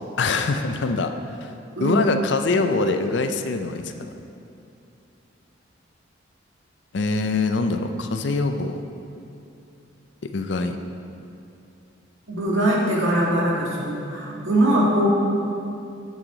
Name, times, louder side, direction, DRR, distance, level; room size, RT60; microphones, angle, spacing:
voice 1, 0.2-1.1 1.4-1.5 1.8-4.1 6.9-8.8 10.3-10.8, left 3 dB, 65° left, 7 dB, 0.5 m, -24 dB
voice 2, 12.3-15.1, right 1 dB, 80° right, -4 dB, 1.7 m, -21 dB
9.0 x 6.4 x 3.9 m, 2.7 s
head